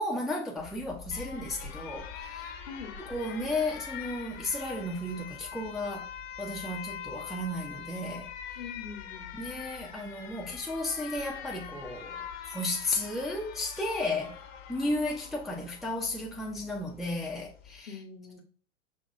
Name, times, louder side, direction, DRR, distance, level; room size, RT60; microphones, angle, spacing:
voice 1, 0.0-2.5 3.0-6.1 6.4-8.3 9.3-14.4 14.7-18.0, left 2 dB, ahead, 0.5 m, -34 dB
Alarm, 0.6-17.8, left 8 dB, 35° left, 0.8 m, -44 dB
voice 2, 8.6-9.3 17.9-18.4, left 6 dB, 65° left, 1.1 m, -43 dB
5.4 x 2.9 x 2.5 m
hypercardioid pair, 100°, 37 cm